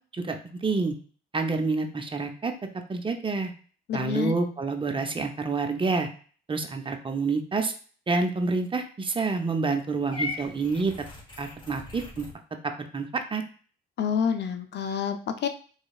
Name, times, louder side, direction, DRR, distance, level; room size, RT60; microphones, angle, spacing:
voice 1, 0.1-0.9 1.3-2.5 2.9-3.5 3.9-6.1 6.5-7.7 8.1-10.9 11.4-12.3 12.6-13.4, right 4 dB, 25° right, 5 dB, 0.6 m, -28 dB
voice 2, 3.9-4.3 14.0-15.5, left 7 dB, 60° left, 7 dB, 0.5 m, -28 dB
Purr / Meow, 10.1-12.3, left 3 dB, 25° left, 1.2 m, -37 dB
3.9 x 3.1 x 2.3 m, 0.42 s
cardioid pair, 90°, 20 cm